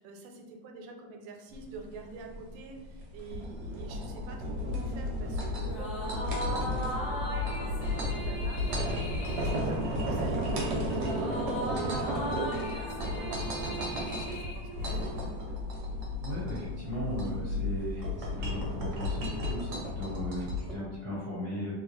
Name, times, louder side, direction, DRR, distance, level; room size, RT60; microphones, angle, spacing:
voice 1, 0.0-7.7 8.1-15.3, right 3 dB, 90° right, 2 dB, 1.3 m, -47 dB
sound 1, 1.5-20.8, left 1 dB, 70° right, 1.2 m, -33 dB
sound 2, 5.6-15.3, equal, 65° left, 1.1 m, -39 dB
voice 2, 16.2-21.7, equal, 10° left, -11 dB, 1.0 m, -37 dB
3.6 x 2.3 x 3.0 m, 1.1 s
omnidirectional pair, 2.0 m